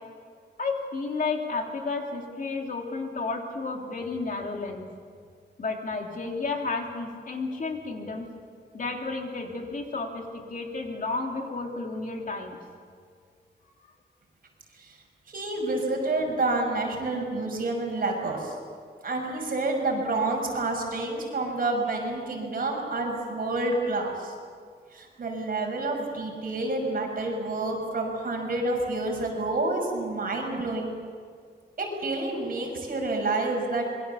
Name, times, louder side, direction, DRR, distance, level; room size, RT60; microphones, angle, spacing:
voice 1, 0.6-4.9 5.6-8.3 8.7-12.6, left 3 dB, 50° left, 1 dB, 3.1 m, -32 dB
voice 2, 15.3-18.5 19.0-24.3 24.9-30.9 31.8-33.8, right 2 dB, 55° right, 1 dB, 6.1 m, -28 dB
27.0 x 22.5 x 7.1 m, 2.1 s
wide cardioid pair, 175°, 18 cm